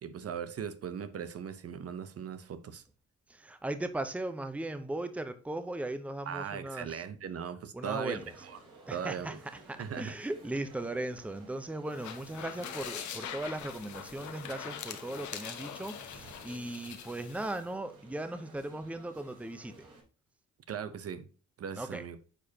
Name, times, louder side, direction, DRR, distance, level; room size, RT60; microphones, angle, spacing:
voice 1, 0.0-2.8 6.3-8.5 8.9-9.4 9.8-10.1 20.7-21.3 21.6-22.2, right 7 dB, 50° right, 0.8 m, -39 dB
voice 2, 3.3-7.0 7.7-8.2 8.9-9.4 9.7-19.9 21.8-22.0, right 1 dB, 5° right, 0.8 m, -38 dB
sound 1, 8.1-20.0, right 3 dB, 90° right, 3.9 m, -55 dB
sound 2, 11.9-17.6, left 9 dB, 70° left, 1.2 m, -43 dB
9.0 x 4.9 x 2.8 m
cardioid pair, 90°, 30 cm